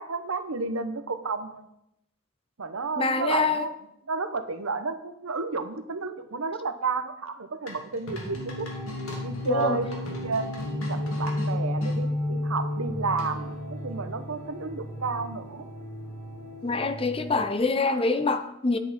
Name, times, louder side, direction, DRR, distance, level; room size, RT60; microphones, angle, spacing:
voice 1, 0.0-1.7 2.6-3.7 4.1-8.7 9.2-15.7, right 4 dB, 85° right, 0.8 m, -32 dB
voice 2, 3.0-3.7 9.5-9.8 16.6-18.8, left 3 dB, 25° left, 0.6 m, -25 dB
sound 1, 7.7-12.0 13.2-13.6, left 1 dB, 85° left, 2.4 m, -40 dB
sound 2, 8.2-17.4, left 1 dB, 65° left, 4.6 m, -33 dB
9.9 x 8.0 x 4.2 m
head